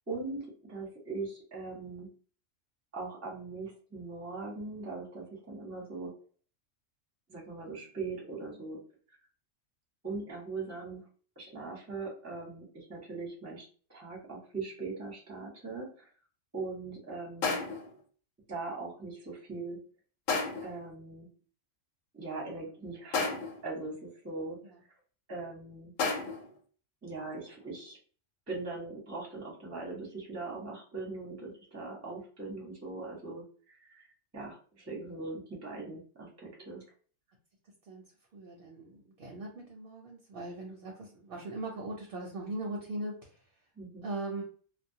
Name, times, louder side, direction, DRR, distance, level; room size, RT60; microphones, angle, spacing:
voice 1, 0.1-2.1 2.9-6.1 7.3-8.8 10.0-11.1 11.4-16.1 16.5-17.6 18.5-19.8 20.6-21.3 22.1-23.4 23.6-24.6 25.3-25.9 27.0-28.0 28.5-36.8 43.8-44.0, right 3 dB, 15° right, -2 dB, 0.6 m, -40 dB
sound 1, 17.4-17.9 20.3-20.8 23.1-23.7 26.0-26.5, left 4 dB, 85° left, 1.0 m, -32 dB
voice 2, 38.3-43.5 44.0-44.4, right 2 dB, 60° right, 0 dB, 0.6 m, -40 dB
2.2 x 2.0 x 2.7 m, 0.42 s
omnidirectional pair, 1.3 m